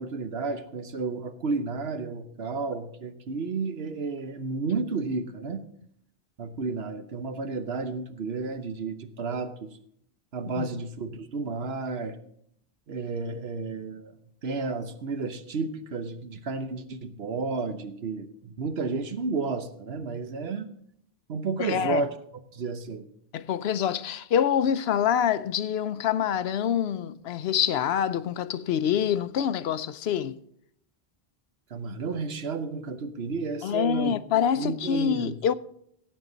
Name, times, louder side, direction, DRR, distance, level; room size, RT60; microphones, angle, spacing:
voice 1, 0.0-5.6 6.4-9.7 10.3-12.2 12.9-14.1 14.4-20.7 21.3-22.1 22.5-23.1 31.7-34.2 34.6-35.4, right 4 dB, 80° right, 1.2 m, -32 dB
voice 2, 21.6-22.1 23.3-30.4 33.6-35.5, left 9 dB, 85° left, 0.9 m, -26 dB
16.5 x 7.8 x 4.0 m
omnidirectional pair, 1.0 m